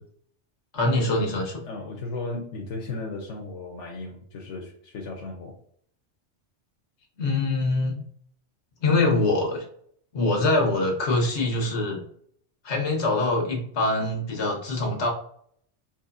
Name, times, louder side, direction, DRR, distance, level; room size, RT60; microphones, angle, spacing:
voice 1, 0.7-1.6 7.2-8.0 8.8-9.6 10.1-12.0 12.6-15.1, left 2 dB, 70° left, 0 dB, 1.4 m, -24 dB
voice 2, 1.6-5.5, left 3 dB, 90° left, -1 dB, 1.1 m, -35 dB
4.2 x 2.9 x 2.5 m, 0.63 s
omnidirectional pair, 1.2 m